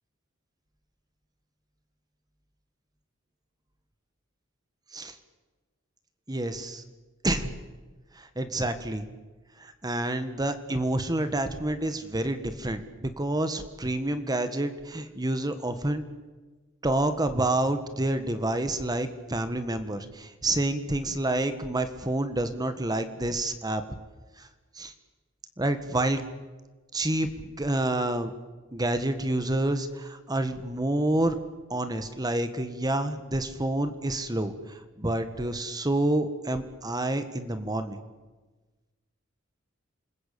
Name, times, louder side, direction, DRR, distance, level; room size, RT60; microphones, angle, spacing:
voice 1, 6.3-6.8 7.2-7.5 8.2-9.0 9.6-16.0 16.8-23.8 24.4-24.5 24.7-24.9 25.6-26.2 26.9-28.3 28.7-31.4 31.7-38.0, right 1 dB, 20° right, 10 dB, 1.6 m, -28 dB
28.0 x 20.5 x 8.6 m, 1.2 s
head